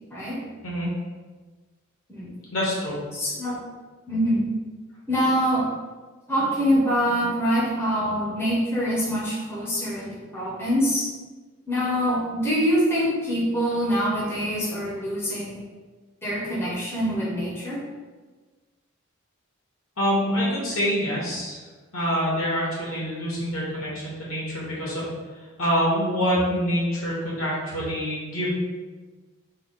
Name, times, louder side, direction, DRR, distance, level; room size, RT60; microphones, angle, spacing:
voice 1, 0.1-0.4 2.1-2.3 3.1-3.6 4.1-4.5 5.1-5.7 6.3-11.1 11.7-15.7 16.2-17.8, equal, 10° left, -6 dB, 0.7 m, -24 dB
voice 2, 2.5-3.0 20.0-21.6 21.9-25.0 25.6-28.5, equal, 75° left, -5 dB, 1.3 m, -26 dB
3.5 x 2.1 x 3.9 m, 1.3 s
head